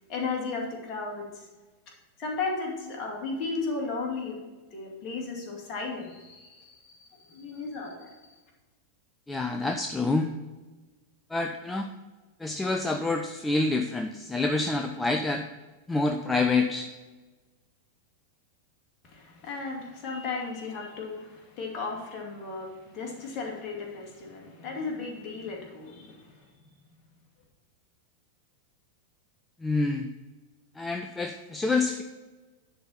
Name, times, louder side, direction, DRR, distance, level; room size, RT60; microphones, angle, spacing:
voice 1, 0.1-1.5 2.2-4.4 4.7-8.3 19.0-26.5, left 4 dB, 35° left, -1 dB, 2.3 m, -35 dB
voice 2, 9.3-10.3 11.3-11.9 12.4-15.4 15.9-16.9 29.6-30.1 30.8-32.0, left 3 dB, 10° left, 5 dB, 0.5 m, -27 dB
10.0 x 4.2 x 5.7 m, 1.2 s
figure-of-eight pair, 90°, 0 cm